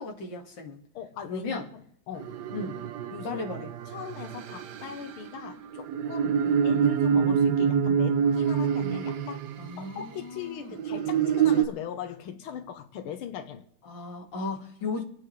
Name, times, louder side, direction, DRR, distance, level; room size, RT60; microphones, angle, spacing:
voice 1, 0.0-0.8 1.3-1.7 2.5-2.8 3.2-3.7 6.4-6.6 9.6-10.7 13.8-15.0, left 3 dB, 55° left, 2.8 m, -36 dB
voice 2, 1.0-2.4 3.1-3.4 3.9-9.4 9.8-13.7, left 8 dB, 75° left, 1.8 m, -39 dB
sound 1, 2.2-10.0 10.7-11.7, right 7 dB, 65° right, 1.1 m, -26 dB
27.5 x 9.6 x 3.3 m
omnidirectional pair, 2.4 m